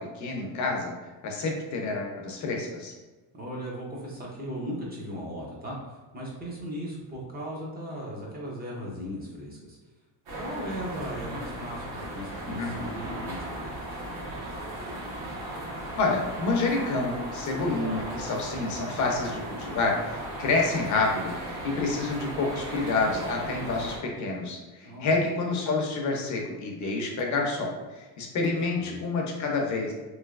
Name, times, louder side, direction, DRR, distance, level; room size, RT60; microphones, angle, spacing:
voice 1, 0.2-0.9 1.2-2.9 12.5-12.7 16.0-29.9, left 3 dB, 40° left, 0 dB, 0.6 m, -28 dB
voice 2, 3.3-9.8 10.3-13.8 24.8-25.2 28.8-29.0, equal, 20° right, -4 dB, 0.5 m, -37 dB
sound 1, 10.3-24.0, right 1 dB, 65° right, 1.1 m, -37 dB
3.1 x 2.8 x 2.4 m, 1.2 s
cardioid pair, 145°, 47 cm